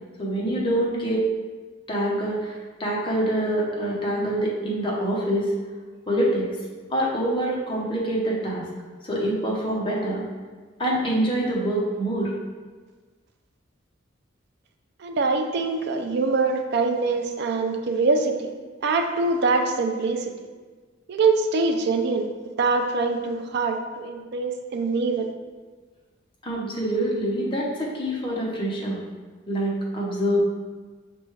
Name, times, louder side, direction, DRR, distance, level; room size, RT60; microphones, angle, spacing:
voice 1, 0.2-1.3 1.9-5.5 6.1-6.5 6.9-8.6 9.0-10.2 10.8-12.3 26.4-29.0 29.5-30.4, right 1 dB, 25° left, -4 dB, 0.8 m, -25 dB
voice 2, 15.0-18.5 18.8-20.2 21.1-22.3 22.6-25.3, right 3 dB, 60° right, 5 dB, 0.4 m, -24 dB
6.0 x 2.3 x 3.1 m, 1.4 s
head